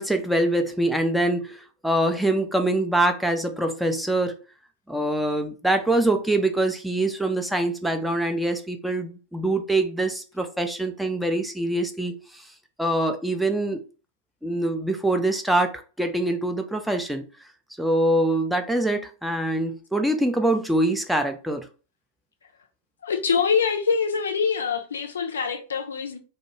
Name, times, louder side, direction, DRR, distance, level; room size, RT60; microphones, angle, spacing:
voice 1, 0.0-4.3 4.9-12.5 12.8-13.8 14.4-17.3 17.8-21.7, right 1 dB, ahead, 0.4 m, -24 dB
voice 2, 23.0-26.2, left 6 dB, 70° left, 0.4 m, -24 dB
2.2 x 2.2 x 2.8 m
figure-of-eight pair, 90°, 0 cm